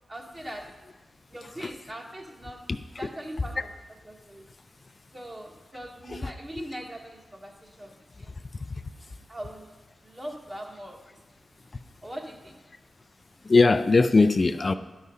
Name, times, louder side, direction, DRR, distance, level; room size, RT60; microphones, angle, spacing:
voice 1, 0.1-0.9 1.3-2.7 3.0-3.7 4.0-4.5 5.1-8.4 9.3-9.7 10.0-11.2 12.0-12.6, equal, 30° right, 1.4 m, -41 dB
voice 2, 8.5-8.8 13.4-14.7, left 3 dB, 40° left, 0.3 m, -21 dB
11.0 x 4.8 x 5.5 m
cardioid pair, 70°, 0 cm